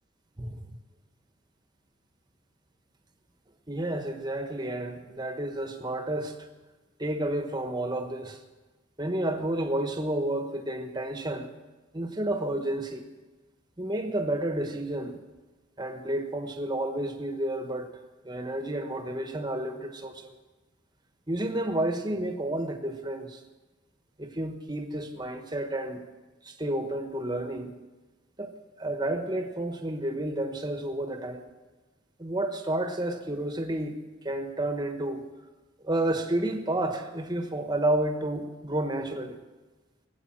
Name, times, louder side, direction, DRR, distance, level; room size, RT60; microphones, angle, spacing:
voice 1, 0.4-0.7 3.7-6.3 7.0-8.4 9.0-11.5 11.9-13.0 13.8-15.2 15.8-17.9 18.2-20.4 21.3-23.4 24.2-26.0 26.4-27.7 28.4-28.5 28.8-31.4 32.2-35.3 35.8-39.4, right 1 dB, 20° right, 6 dB, 1.2 m, -31 dB
18.0 x 8.4 x 7.6 m, 1.2 s
head